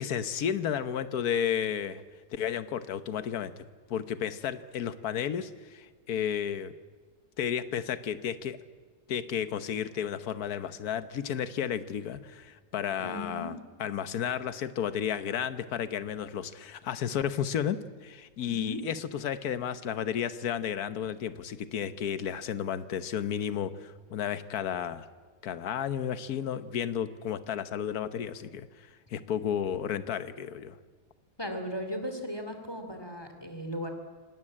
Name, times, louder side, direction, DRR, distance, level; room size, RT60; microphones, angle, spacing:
voice 1, 0.0-2.0 2.3-3.6 3.9-6.7 7.4-8.6 9.1-25.1 25.4-30.8, left 9 dB, 65° left, 13 dB, 1.4 m, -32 dB
voice 2, 13.0-13.5 18.5-18.8 31.4-33.9, equal, 15° left, 6 dB, 2.5 m, -36 dB
27.0 x 18.5 x 8.7 m, 1.5 s
omnidirectional pair, 1.8 m